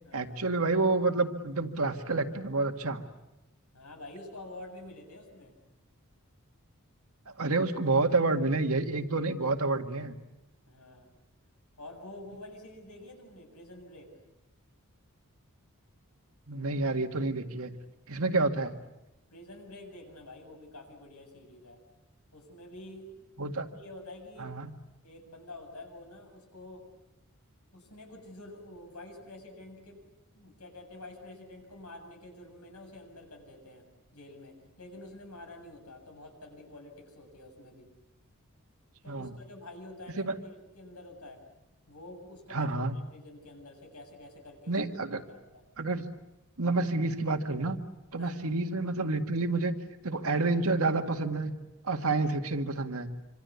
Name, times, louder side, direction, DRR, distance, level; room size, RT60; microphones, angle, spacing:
voice 1, 0.1-3.0 7.4-10.2 16.5-17.7 18.1-18.7 23.4-23.7 24.4-24.7 39.1-39.3 40.2-40.3 42.5-42.9 44.7-45.2 45.8-46.1 46.6-47.8 48.1-49.7 50.0-51.5 51.8-53.1, right 3 dB, 75° right, 6 dB, 2.0 m, -29 dB
voice 2, 3.7-5.5 10.7-11.1 11.8-14.1 19.3-21.8 22.3-23.2 23.7-24.5 25.0-26.9 27.7-30.1 30.3-33.9 34.1-37.9 39.0-41.4 41.9-42.7 43.1-44.9 45.3-45.6 48.2-48.4, left 1 dB, 90° left, 3 dB, 7.4 m, -48 dB
26.0 x 26.0 x 8.3 m, 0.96 s
head